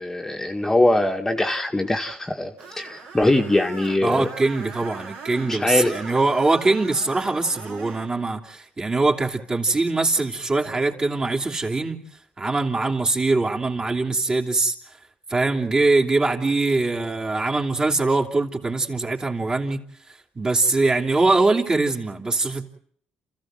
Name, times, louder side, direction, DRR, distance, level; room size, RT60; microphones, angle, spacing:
voice 1, 0.0-4.3 5.4-6.0, left 1 dB, 15° left, 1.8 m, -22 dB
Screech, 2.6-8.1, right 5 dB, 80° right, 4.6 m, -40 dB
voice 2, 4.0-12.0 12.4-14.7 15.3-19.8 20.3-22.7, right 3 dB, 25° right, 3.3 m, -22 dB
28.5 x 15.0 x 7.8 m
cardioid pair, 80°, 3 cm